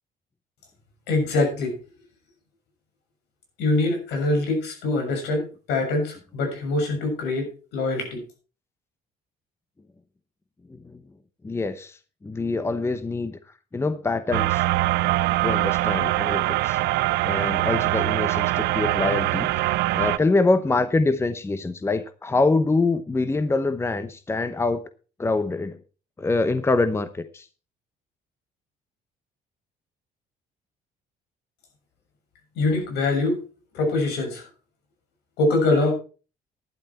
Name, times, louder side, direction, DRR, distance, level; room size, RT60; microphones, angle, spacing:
voice 1, 1.1-1.7 3.6-7.5 7.7-8.2 32.5-33.4 33.7-34.5 35.4-35.9, left 2 dB, 80° left, 3 dB, 6.7 m, -23 dB
voice 2, 11.4-13.4 13.7-14.6 15.4-16.8 17.2-19.5 19.9-24.8 25.2-25.8 26.2-27.5, left 3 dB, 15° left, 12 dB, 0.9 m, -25 dB
sound 1, 14.3-20.2, right 17 dB, 85° right, 0.7 m, -23 dB
12.0 x 10.5 x 4.4 m, 0.35 s
cardioid pair, 110°, 17 cm